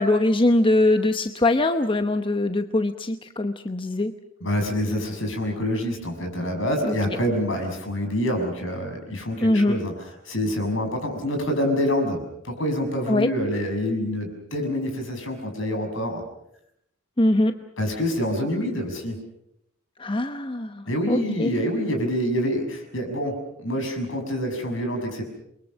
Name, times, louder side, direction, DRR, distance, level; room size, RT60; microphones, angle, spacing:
voice 1, 0.0-4.1 6.8-6.9 9.4-9.8 13.1-13.3 17.2-17.5 20.0-21.5, left 2 dB, 25° left, 8 dB, 0.9 m, -22 dB
voice 2, 4.4-9.9 10.2-16.2 17.8-19.2 20.9-25.2, equal, 70° left, 4 dB, 6.4 m, -26 dB
29.0 x 23.0 x 6.4 m, 0.77 s
head